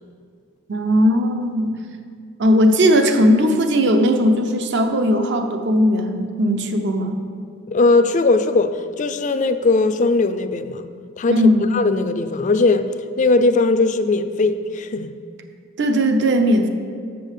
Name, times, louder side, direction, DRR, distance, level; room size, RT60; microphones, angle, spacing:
voice 1, 0.7-1.7 2.4-7.2 11.3-11.8 15.8-16.7, equal, 55° right, 0.7 m, -17 dB
voice 2, 7.7-10.8 11.2-12.9 13.2-15.1, left 3 dB, 35° left, 0.4 m, -19 dB
7.2 x 5.4 x 7.3 m
head